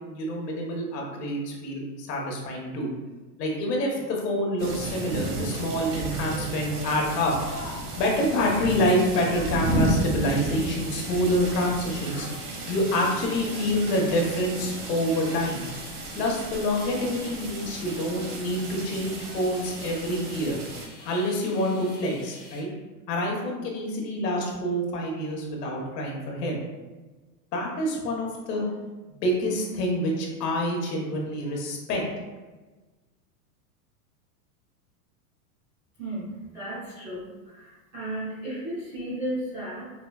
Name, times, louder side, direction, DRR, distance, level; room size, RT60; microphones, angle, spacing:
voice 1, 0.0-2.9 3.4-12.4 12.7-15.7 16.1-20.6 21.0-22.7 23.1-26.6 27.5-28.7 29.2-32.0, equal, 80° left, -1 dB, 1.2 m, -27 dB
sound 1, 4.6-20.9, right 1 dB, 75° right, 1.3 m, -33 dB
sound 2, 10.3-22.6, left 3 dB, 30° left, 0.7 m, -49 dB
voice 2, 36.0-39.9, right 1 dB, 10° right, -15 dB, 0.4 m, -34 dB
5.0 x 2.3 x 2.3 m, 1.2 s
supercardioid pair, 180°, 47 cm